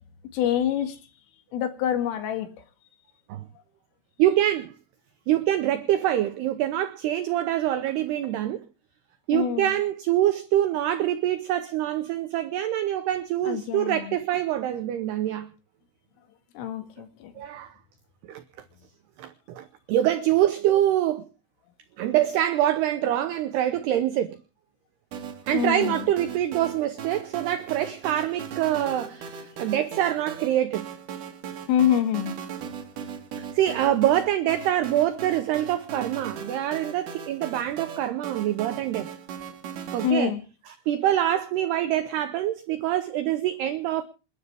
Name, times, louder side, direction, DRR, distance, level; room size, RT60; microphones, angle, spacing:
voice 1, 0.3-1.0 1.5-2.5 9.3-9.8 13.4-14.2 16.6-17.3 25.5-26.1 31.7-32.4 40.0-40.4, left 10 dB, 75° left, 4.5 m, -26 dB
voice 2, 4.2-4.7 5.3-8.7 9.3-15.5 17.4-17.7 18.3-18.4 19.2-21.2 22.0-24.4 25.5-30.9 33.4-39.1 39.9-40.3 40.9-44.0, right 12 dB, 85° right, 2.3 m, -25 dB
sound 1, 25.1-40.1, right 7 dB, 55° right, 2.5 m, -38 dB
28.0 x 11.0 x 3.4 m
omnidirectional pair, 5.9 m